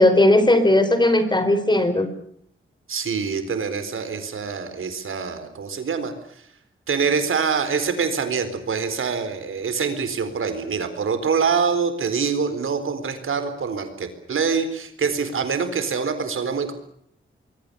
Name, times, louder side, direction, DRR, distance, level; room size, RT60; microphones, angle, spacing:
voice 1, 0.0-2.1, left 1 dB, 20° left, 11 dB, 4.3 m, -17 dB
voice 2, 2.9-6.1 6.9-16.7, right 5 dB, 85° right, 10 dB, 4.3 m, -25 dB
25.5 x 23.0 x 7.0 m, 0.68 s
wide cardioid pair, 95°, 21 cm